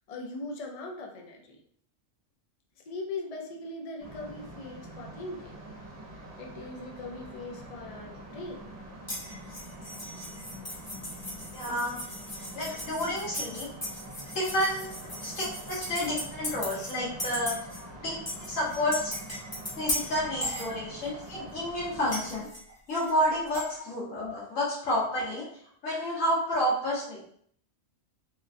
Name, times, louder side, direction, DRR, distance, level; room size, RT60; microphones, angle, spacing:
voice 1, 0.1-1.6 2.9-5.5 6.4-8.7 17.8-17.9, left 2 dB, 60° left, 1 dB, 0.4 m, -40 dB
sound 1, 4.0-22.4, right 1 dB, 75° right, 1.3 m, -45 dB
sound 2, 9.1-16.9 17.2-17.8 18.3-21.3 22.1-23.7, left 1 dB, 15° left, 0.9 m, -37 dB
voice 2, 11.5-12.0 12.5-13.7 14.3-14.9 15.2-17.5 18.0-18.2 18.5-19.1 19.8-22.5 22.9-25.5 25.8-27.2, equal, 80° left, -6 dB, 1.6 m, -30 dB
3.7 x 2.2 x 2.5 m, 0.63 s
omnidirectional pair, 1.3 m